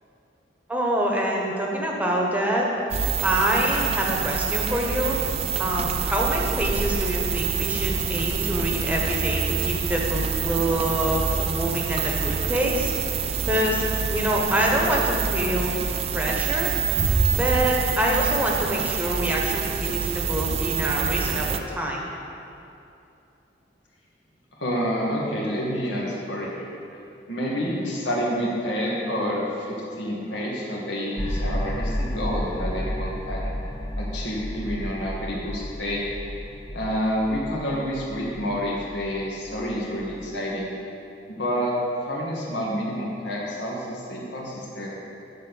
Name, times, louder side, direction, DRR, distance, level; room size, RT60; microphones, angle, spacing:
voice 1, 0.7-2.7 3.2-5.2 5.6-13.2 13.5-13.8 14.1-15.7 16.1-16.7 17.3-22.0, equal, 10° right, -2 dB, 1.1 m, -25 dB
sound 1, 2.9-21.6, right 6 dB, 35° right, 0.4 m, -26 dB
voice 2, 24.6-26.7 27.3-33.5 34.0-36.1 36.7-40.7 41.3-41.8 42.1-44.9, equal, 85° left, -4 dB, 2.0 m, -28 dB
sound 2, 31.2-40.5, equal, 20° left, 0.6 m, -32 dB
10.5 x 4.4 x 7.1 m, 2.8 s
head